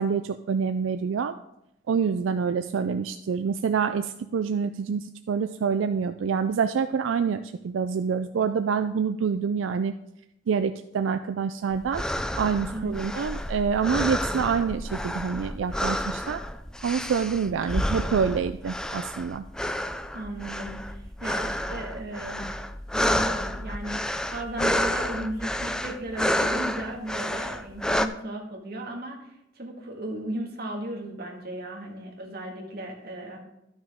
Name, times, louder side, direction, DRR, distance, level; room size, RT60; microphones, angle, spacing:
voice 1, 0.0-1.3 1.9-9.9 10.5-12.0 12.4-16.4 16.8-19.4, right 6 dB, 90° right, 9 dB, 0.4 m, -26 dB
sound 1, 11.7-28.1, left 1 dB, 5° left, 0.3 m, -30 dB
voice 2, 12.7-13.3 20.1-22.5 22.9-29.3 29.6-33.4, right 1 dB, 55° right, 0 dB, 1.9 m, -35 dB
12.5 x 6.1 x 3.6 m, 0.84 s
head